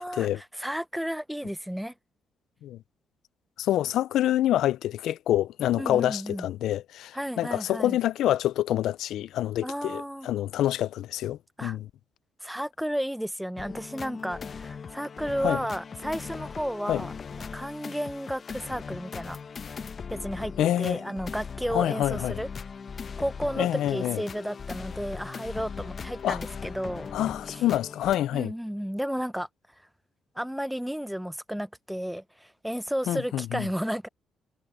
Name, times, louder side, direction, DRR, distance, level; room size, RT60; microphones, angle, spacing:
voice 1, 0.0-1.9 5.8-6.5 7.1-8.0 9.6-10.3 11.6-11.8 12.4-17.1 17.5-19.4 19.7-19.8 20.1-22.5 23.2-27.1 27.5-27.6 28.3-29.5 30.4-34.1, equal, ahead, 0.7 m, -33 dB
voice 2, 3.6-11.9 15.4-15.6 16.9-17.0 20.6-21.0 21.7-22.4 23.6-24.2 26.2-26.4 27.1-28.5 33.1-33.7, left 13 dB, 80° left, 0.4 m, -27 dB
sound 1, 13.6-28.2, left 6 dB, 45° left, 1.0 m, -39 dB
cardioid pair, 90°, 0 cm